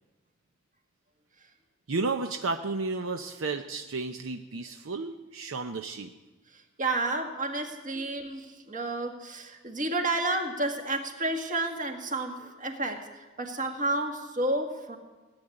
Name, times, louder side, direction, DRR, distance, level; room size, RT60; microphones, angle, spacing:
voice 1, 1.9-6.1 7.9-8.1, right 3 dB, 70° right, 6 dB, 0.7 m, -32 dB
voice 2, 6.8-13.0 13.4-15.0, right 2 dB, 40° right, 3 dB, 1.9 m, -30 dB
18.0 x 8.0 x 9.9 m, 1.2 s
head